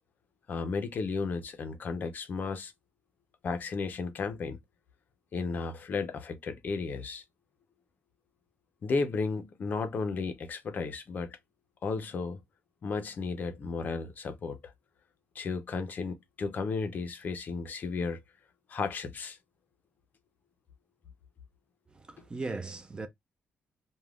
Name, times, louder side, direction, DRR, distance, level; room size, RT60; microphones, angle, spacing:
voice 1, 0.5-2.7 3.4-4.6 5.3-7.2 8.8-11.4 11.8-12.4 12.8-14.6 15.4-18.2 18.7-19.4, left 4 dB, 40° left, 0.5 m, -34 dB
voice 2, 21.9-23.1, right 3 dB, 20° right, 0.3 m, -38 dB
3.3 x 2.1 x 2.3 m
cardioid pair, 160°, 5 cm